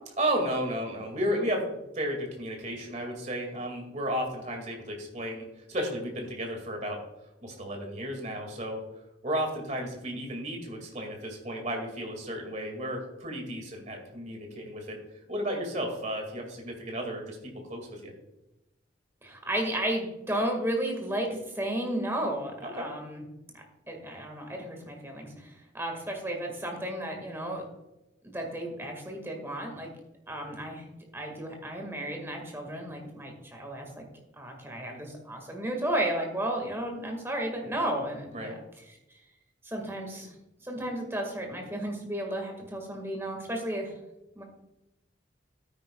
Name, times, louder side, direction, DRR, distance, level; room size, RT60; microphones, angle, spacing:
voice 1, 0.2-1.6 1.9-7.0 7.4-8.8 9.2-18.1 22.6-22.9 38.3-38.5, equal, 35° right, 2 dB, 2.1 m, -33 dB
voice 2, 19.2-23.2 23.5-27.6 28.2-29.9 30.3-34.0 34.4-38.5 38.9-39.0 39.6-40.3 40.6-43.9 44.3-44.4, right 1 dB, 15° right, 2 dB, 1.7 m, -33 dB
12.5 x 9.5 x 2.3 m, 0.93 s
head